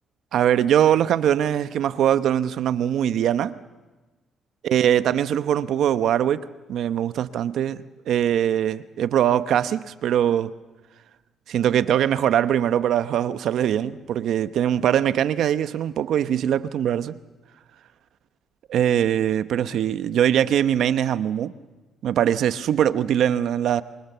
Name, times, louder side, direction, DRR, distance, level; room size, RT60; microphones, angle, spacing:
voice 1, 0.3-3.5 4.6-10.5 11.5-17.1 18.7-21.5 22.0-23.8, right 10 dB, 75° right, 0.9 m, -22 dB
25.5 x 24.5 x 6.9 m
cardioid pair, 90°, 0 cm